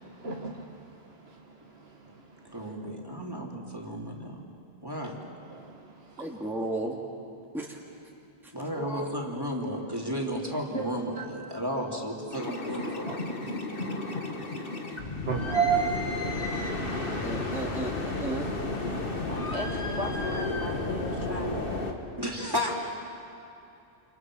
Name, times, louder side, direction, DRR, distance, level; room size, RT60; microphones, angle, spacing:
voice 1, 0.2-0.8 1.3-1.4 1.9-2.0 5.5-5.8 10.7-10.9 11.2-11.3 13.1-13.2 15.3-16.3, right 7 dB, 80° right, 0 dB, 1.7 m, -30 dB
voice 2, 2.5-4.4 4.8-5.2 8.5-13.1 22.2-22.7, equal, 20° right, -1 dB, 3.2 m, -33 dB
voice 3, 6.2-7.0 7.5-7.8 8.4-8.5 17.2-18.5, right 2 dB, ahead, -3 dB, 2.4 m, -34 dB
voice 4, 8.5-9.2 19.3-21.7, left 1 dB, 35° left, 0 dB, 3.0 m, -36 dB
sound 1, 12.3-21.9, left 2 dB, 60° left, 2.1 m, -32 dB
29.5 x 28.5 x 6.3 m, 2.7 s
omnidirectional pair, 1.0 m